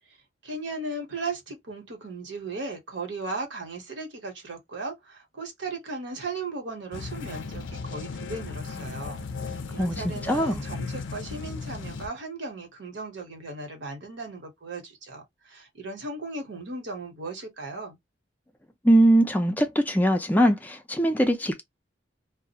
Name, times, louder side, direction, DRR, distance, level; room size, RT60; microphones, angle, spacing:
voice 1, 0.4-18.0, right 3 dB, 75° right, 0.9 m, -36 dB
sound 1, 6.9-12.1, left 4 dB, 90° left, 0.4 m, -36 dB
voice 2, 9.8-10.6 18.8-21.6, right 1 dB, 10° left, 0.4 m, -21 dB
2.3 x 2.0 x 2.7 m
head